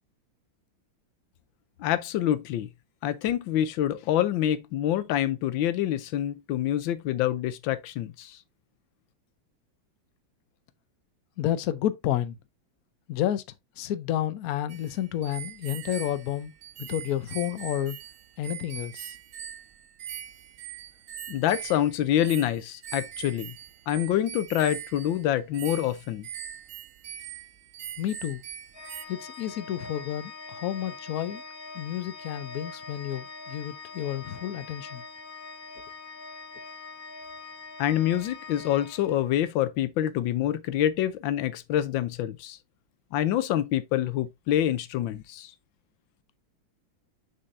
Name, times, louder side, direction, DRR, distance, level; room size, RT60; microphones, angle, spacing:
voice 1, 1.8-2.7 3.0-8.4 21.3-23.5 23.9-26.3 37.8-42.6 43.1-45.5, left 11 dB, 90° left, 1.4 m, -26 dB
voice 2, 11.4-12.4 13.1-13.4 13.8-16.5 16.8-18.0 18.4-19.2 28.0-28.4 29.1-31.4 31.7-35.0, left 12 dB, 65° left, 1.0 m, -30 dB
sound 1, 14.7-29.1, right 9 dB, 90° right, 0.7 m, -42 dB
Organ, 28.7-39.6, left 3 dB, 30° left, 1.9 m, -43 dB
6.6 x 5.7 x 2.6 m
omnidirectional pair, 2.1 m